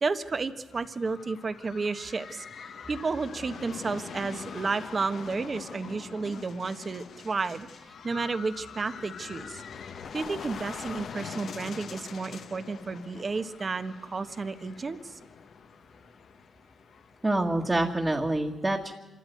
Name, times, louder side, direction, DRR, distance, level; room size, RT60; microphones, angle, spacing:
voice 1, 0.0-2.4 2.9-9.6 10.1-15.2, right 4 dB, 40° right, 10 dB, 1.3 m, -32 dB
sound 1, 0.7-17.3, left 6 dB, 70° left, 1.2 m, -44 dB
voice 2, 17.2-18.9, right 1 dB, 20° right, 0 dB, 1.8 m, -26 dB
25.5 x 14.0 x 9.4 m, 1.2 s
cardioid pair, 80°, 0 cm